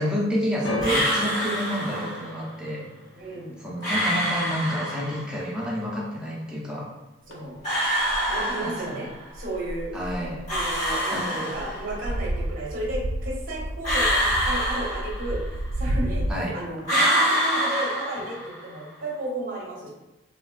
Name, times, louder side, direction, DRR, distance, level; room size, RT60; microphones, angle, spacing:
voice 1, 0.0-2.9 3.6-6.9 8.6-9.0 9.9-10.4 11.1-11.5 16.3-16.5, equal, 5° right, -5 dB, 0.6 m, -29 dB
sound 1, 0.6-6.9 7.2-7.9 8.6-8.7, equal, 70° left, 0.5 m, -38 dB
sound 2, 0.8-2.3 3.8-5.3 7.6-9.2 10.5-12.0 13.8-15.6 16.8-18.7, equal, 40° left, 1.0 m, -26 dB
voice 2, 3.1-3.6 7.3-7.6 8.3-9.1 9.3-9.9 10.5-15.4 15.8-16.3 16.5-19.9, right 1 dB, 45° right, -3 dB, 0.6 m, -33 dB
sound 3, 8.0-8.5 9.3-11.1 11.5-16.4, right 1 dB, 85° right, 0.4 m, -31 dB
3.4 x 2.4 x 2.3 m, 1.0 s
head